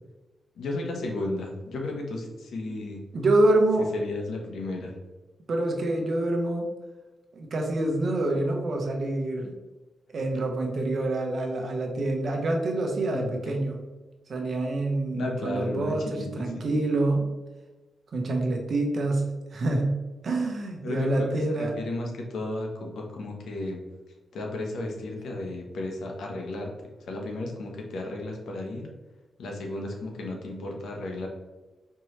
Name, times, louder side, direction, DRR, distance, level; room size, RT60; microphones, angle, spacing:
voice 1, 0.6-3.0 3.9-4.9 13.1-13.3 15.1-16.7 20.8-23.8 24.3-26.7 27.1-28.9 29.4-31.3, left 2 dB, 80° left, 1 dB, 0.9 m, -33 dB
voice 2, 3.1-3.9 5.5-6.7 7.3-9.5 10.1-13.8 14.3-17.3 18.1-19.3 19.5-20.0 20.2-21.7, right 2 dB, 55° right, 2 dB, 0.8 m, -26 dB
4.5 x 3.0 x 3.1 m, 1.2 s
cardioid pair, 100°, 0 cm